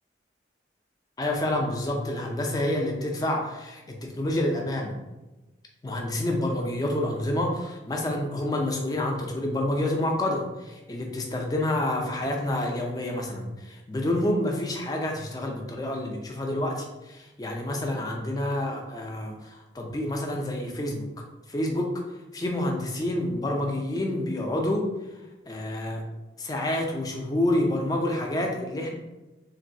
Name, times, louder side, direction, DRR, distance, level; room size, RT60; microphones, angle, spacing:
voice 1, 1.2-5.0 5.8-21.1 21.5-21.9 22.3-24.9 25.5-26.0 26.4-28.9, left 1 dB, 20° left, 1 dB, 0.4 m, -28 dB
3.0 x 2.6 x 2.6 m, 1.1 s
head